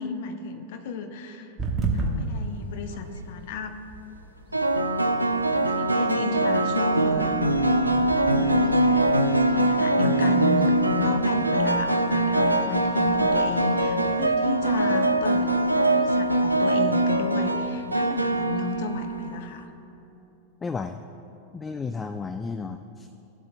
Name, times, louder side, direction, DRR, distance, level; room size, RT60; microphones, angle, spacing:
voice 1, 0.0-1.5 1.9-3.8 5.7-7.6 8.1-8.8 9.5-10.7 11.0-15.5 15.8-19.7 22.6-22.7, left 4 dB, 50° left, 7 dB, 0.7 m, -33 dB
sound 1, 1.6-19.4, right 3 dB, 25° right, 1.2 m, -38 dB
sound 2, 2.9-3.3 4.5-19.4, right 2 dB, 85° right, 0.5 m, -22 dB
voice 2, 20.6-21.0 21.5-23.1, left 4 dB, 15° left, 9 dB, 0.3 m, -33 dB
16.5 x 7.7 x 2.6 m, 2.9 s
figure-of-eight pair, 90°, 0 cm